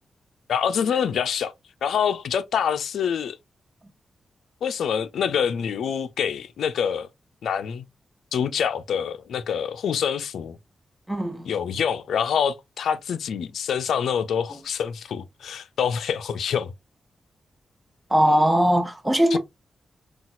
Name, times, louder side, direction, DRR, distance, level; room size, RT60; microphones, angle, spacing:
voice 1, 0.5-1.5 1.8-3.4 4.6-7.1 7.4-7.8 8.3-10.6 11.5-16.7 19.3-19.4, left 7 dB, 85° left, 0.4 m, -26 dB
voice 2, 11.1-11.5 18.1-19.4, equal, 15° right, 1.0 m, -20 dB
4.0 x 2.3 x 2.5 m
supercardioid pair, 45°, 0 cm